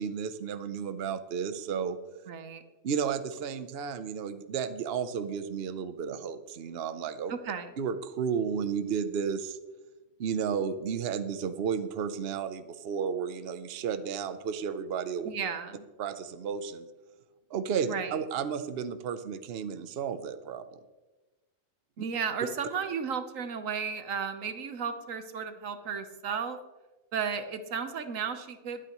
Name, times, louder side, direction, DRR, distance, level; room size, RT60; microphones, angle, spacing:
voice 1, 0.0-2.0 2.8-7.3 7.8-9.6 10.2-15.3 16.0-16.9 17.5-20.6, right 7 dB, 55° right, 10 dB, 0.9 m, -33 dB
voice 2, 2.3-2.6 7.3-7.7 15.2-15.8 17.9-18.1 22.0-26.6 27.1-28.8, right 6 dB, 85° right, 9 dB, 1.4 m, -34 dB
21.5 x 8.9 x 3.0 m, 1.2 s
omnidirectional pair, 1.3 m